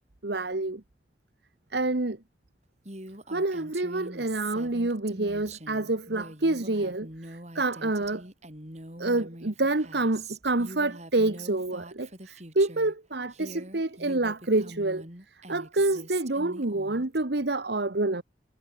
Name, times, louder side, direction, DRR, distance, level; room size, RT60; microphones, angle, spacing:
voice 1, 0.2-0.8 1.7-2.2 3.3-8.2 9.0-15.1 15.5-18.2, right 2 dB, 60° right, 1.3 m, -27 dB
Female speech woman speaking, 2.8-12.9 13.3-17.2, right 2 dB, 35° right, 6.3 m, -44 dB
head